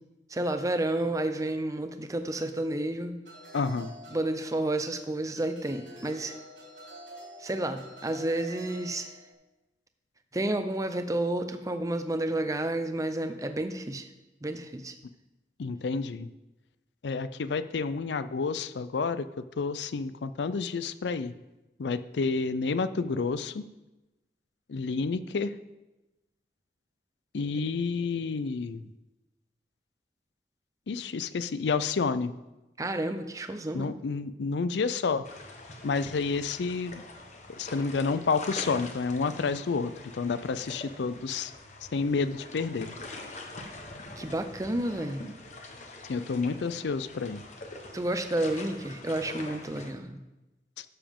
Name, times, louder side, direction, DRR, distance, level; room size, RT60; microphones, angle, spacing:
voice 1, 0.3-3.2 4.1-6.3 7.4-9.1 10.3-14.1 14.4-14.9 32.8-33.9 44.2-45.3 47.9-50.2, right 1 dB, 20° right, 8 dB, 0.6 m, -30 dB
sound 1, 3.2-5.0 5.4-9.3, equal, 90° right, 3.9 m, -48 dB
voice 2, 3.5-3.9 15.6-16.3 17.0-21.3 21.8-23.7 24.7-25.5 27.3-28.9 30.9-32.4 33.7-35.2 35.8-37.0 37.6-41.5 41.9-42.9 46.1-47.4, left 4 dB, 75° left, 14 dB, 0.4 m, -30 dB
sound 2, 35.2-49.9, left 2 dB, 40° left, 1.0 m, -44 dB
12.0 x 7.0 x 3.6 m, 1.0 s
head